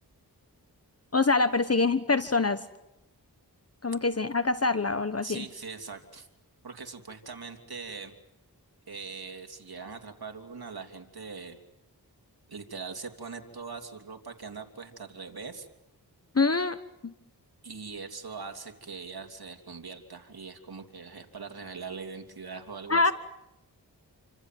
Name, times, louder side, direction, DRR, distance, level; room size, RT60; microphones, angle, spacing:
voice 1, 1.1-2.6 3.8-5.4 16.3-16.8 17.0-17.1 22.9-23.1, left 3 dB, 35° left, 12 dB, 1.2 m, -25 dB
voice 2, 5.2-6.3 6.6-8.1 8.9-11.6 12.5-15.7 17.6-23.0, right 5 dB, 60° right, 4 dB, 3.1 m, -41 dB
28.5 x 25.5 x 7.7 m, 0.89 s
cardioid pair, 40°, 41 cm